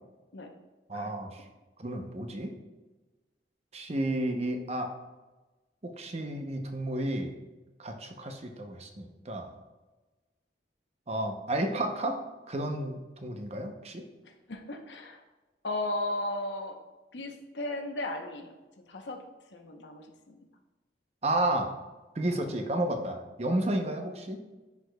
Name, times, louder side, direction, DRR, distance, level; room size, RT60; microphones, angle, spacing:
voice 1, 0.9-1.4 1.8-2.5 3.7-4.9 5.8-7.3 7.8-9.5 11.1-12.2 12.5-14.0 21.2-21.7 22.2-24.4, right 1 dB, 35° right, 4 dB, 0.6 m, -32 dB
voice 2, 14.5-15.2 15.6-16.8 17.1-18.5 18.9-19.2 19.5-20.4, left 1 dB, 80° left, 4 dB, 0.8 m, -35 dB
10.5 x 4.8 x 2.2 m, 1.2 s
head